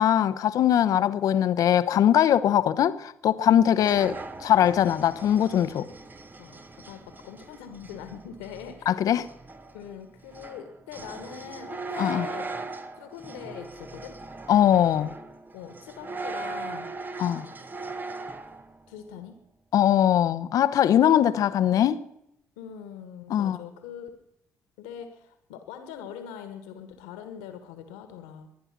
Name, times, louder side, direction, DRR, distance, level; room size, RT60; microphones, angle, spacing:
voice 1, 0.0-4.1 4.4-5.9 8.9-9.2 12.0-12.3 14.5-15.1 17.2-17.5 19.7-22.0 23.3-23.6, left 10 dB, 55° left, 13 dB, 0.9 m, -21 dB
voice 2, 3.5-4.2 6.4-9.0 9.7-12.5 13.0-14.2 15.5-16.9 18.9-19.4 22.6-24.2 24.8-28.5, left 8 dB, 75° left, 8 dB, 1.7 m, -42 dB
sound 1, 3.8-18.8, right 3 dB, 25° right, 1.3 m, -39 dB
22.0 x 10.0 x 6.0 m, 0.81 s
figure-of-eight pair, 45°, 7 cm